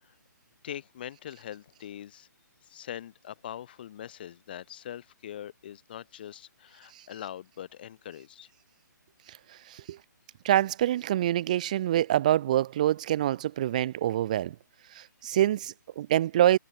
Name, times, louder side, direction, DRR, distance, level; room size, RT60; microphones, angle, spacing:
voice 1, 0.6-2.3 2.7-8.5, left 10 dB, 30° left, 7.0 m, -42 dB
voice 2, 9.7-10.0 10.4-14.5 14.9-16.6, right 12 dB, 25° right, 1.0 m, -25 dB
hypercardioid pair, 175°, 10 cm